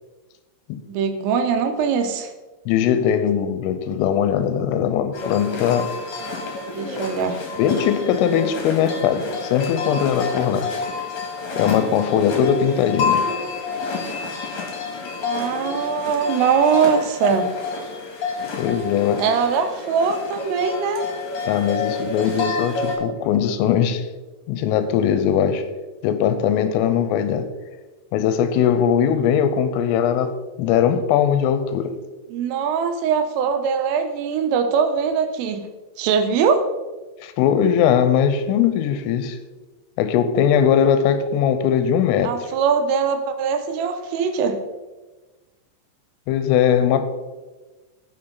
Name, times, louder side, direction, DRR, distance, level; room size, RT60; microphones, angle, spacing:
voice 1, 0.9-2.3 6.7-7.4 15.2-17.5 19.2-21.1 32.3-35.7 36.0-36.6 42.2-44.6, right 6 dB, 85° right, 3.5 m, -21 dB
voice 2, 2.7-5.9 7.6-10.7 11.6-13.3 18.6-19.2 21.5-24.0 24.5-25.7 26.0-27.5 28.1-32.0 37.2-39.4 40.0-42.4 46.3-47.1, left 8 dB, 90° left, 3.4 m, -20 dB
sound 1, 5.1-23.0, left 4 dB, 50° left, 2.4 m, -28 dB
16.5 x 6.2 x 4.0 m
omnidirectional pair, 5.7 m